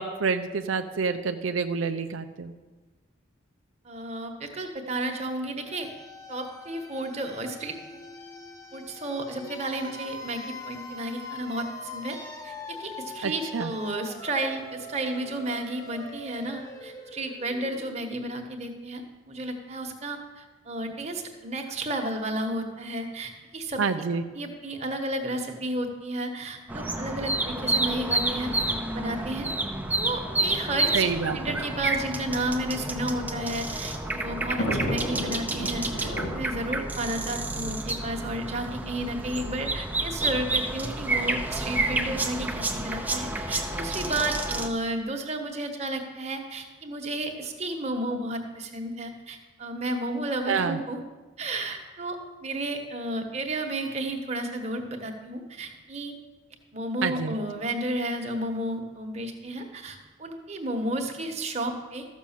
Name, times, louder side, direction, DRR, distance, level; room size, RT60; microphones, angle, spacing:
voice 1, 0.0-2.5 13.2-13.7 23.8-24.2 30.9-31.6 50.5-50.8 57.0-57.3, right 5 dB, 90° right, 8 dB, 0.5 m, -28 dB
voice 2, 3.8-5.9 6.3-8.0 8.7-12.2 12.4-24.0 24.3-29.5 30.0-31.0 31.3-51.0 51.4-56.1 56.7-62.1, right 1 dB, 35° right, 3 dB, 1.3 m, -32 dB
sound 1, 5.6-18.5, left 2 dB, 15° left, 1.0 m, -43 dB
sound 2, 26.7-44.7, right 2 dB, 10° right, 0.7 m, -30 dB
Thunder, 33.1-38.5 39.3-39.4 39.6-39.7 40.8-41.1, equal, 65° left, 2.7 m, -34 dB
13.5 x 6.2 x 7.3 m, 1.3 s
head